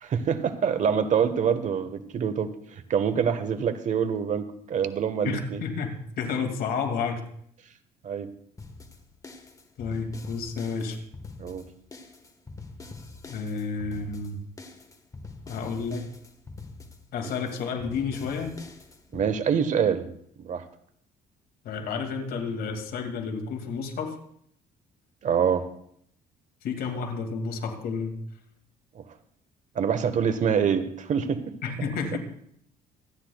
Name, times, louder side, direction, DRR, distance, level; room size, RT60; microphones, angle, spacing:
voice 1, 0.0-5.6 8.0-8.3 11.4-11.6 19.1-20.1 20.4-20.6 25.2-25.7 28.9-29.0 29.7-31.4 31.8-31.9, right 7 dB, 45° right, 11 dB, 1.1 m, -25 dB
voice 2, 5.2-7.2 9.8-11.0 13.3-14.4 15.5-16.1 17.1-18.6 21.6-24.2 26.6-28.1 31.6-32.2, left 5 dB, 65° left, 4 dB, 2.2 m, -31 dB
sound 1, 8.6-19.3, left 3 dB, 20° left, 1.3 m, -45 dB
25.5 x 9.9 x 2.3 m, 0.68 s
cardioid pair, 110°, 17 cm